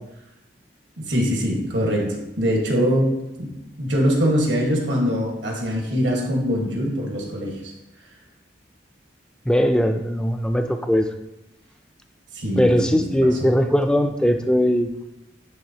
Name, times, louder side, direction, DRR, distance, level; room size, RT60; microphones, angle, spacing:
voice 1, 1.0-3.1 3.4-7.7 12.3-13.5, equal, 80° right, -1 dB, 1.4 m, -23 dB
voice 2, 9.5-11.1 12.6-14.9, equal, 5° left, 6 dB, 0.3 m, -19 dB
9.4 x 3.6 x 2.8 m, 0.93 s
head